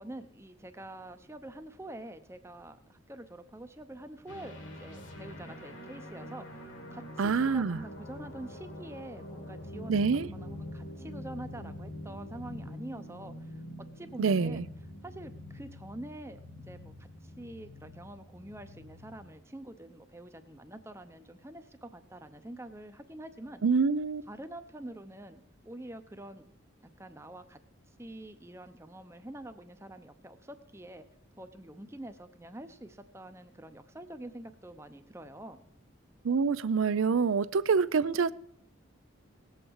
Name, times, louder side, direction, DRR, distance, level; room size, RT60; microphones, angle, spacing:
voice 1, 0.0-13.6 13.9-14.7 15.0-16.4 16.7-23.6 24.3-26.5 26.8-27.6 28.0-31.0 31.4-35.7 37.0-37.2, right 1 dB, 15° right, 0.7 m, -46 dB
sound 1, 4.3-19.4, left 1 dB, 65° left, 1.9 m, -45 dB
voice 2, 7.2-7.8 9.9-10.3 14.2-14.7 23.6-24.2 36.2-38.3, right 5 dB, 85° right, 0.5 m, -26 dB
19.0 x 8.1 x 4.7 m
head